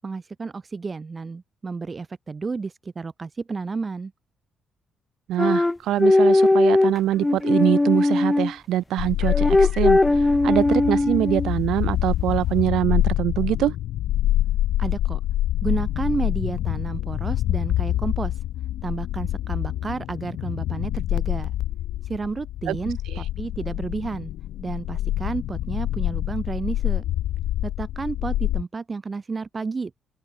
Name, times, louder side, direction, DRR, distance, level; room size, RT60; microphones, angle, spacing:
voice 1, 0.0-4.1 14.8-15.2 15.6-18.3 18.8-21.5 22.0-24.3 24.6-27.0 27.6-30.0, right 4 dB, 30° right, 7.7 m, -31 dB
voice 2, 5.3-13.7 22.7-22.8 23.1-23.2, right 13 dB, 80° right, 4.5 m, -24 dB
sound 1, 5.4-8.5 9.2-11.5, left 2 dB, 15° left, 4.4 m, -19 dB
sound 2, 9.0-28.6, left 13 dB, 85° left, 5.0 m, -26 dB
cardioid pair, 90°, 0 cm